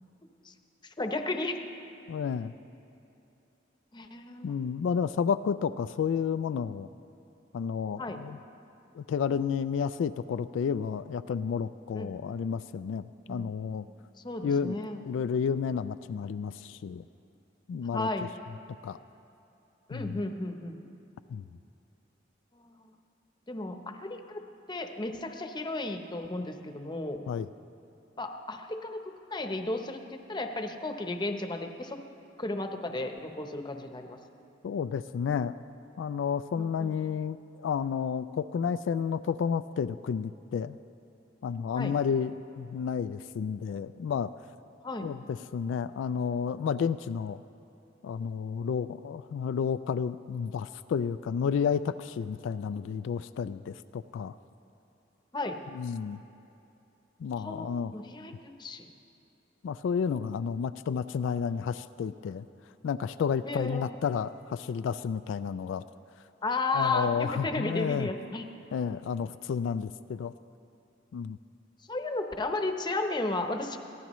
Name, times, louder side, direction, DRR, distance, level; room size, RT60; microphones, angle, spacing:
voice 1, 0.8-1.5 3.9-4.5 8.0-8.2 11.9-12.3 13.3-13.5 14.2-15.0 17.9-18.3 19.9-20.8 22.5-22.9 23.5-24.4 24.7-27.2 28.2-32.0 32.4-34.2 36.6-36.9 41.8-41.9 44.8-45.1 55.3-55.6 57.4-58.9 63.4-64.0 66.4-68.5 71.9-73.8, left 2 dB, 25° left, 5 dB, 0.8 m, -34 dB
voice 2, 2.1-2.5 4.4-6.9 7.5-8.4 8.9-13.9 14.4-14.8 15.1-17.1 17.7-18.1 18.8-19.0 19.9-20.2 21.3-21.4 27.3-27.5 34.6-35.5 36.0-40.8 41.4-44.3 45.0-47.4 48.0-54.3 55.7-56.2 57.2-57.9 59.6-62.5 62.8-65.8 66.7-68.1 68.7-70.3 71.1-71.4, left 6 dB, 85° left, 12 dB, 0.3 m, -31 dB
22.0 x 15.0 x 3.1 m, 2.8 s
head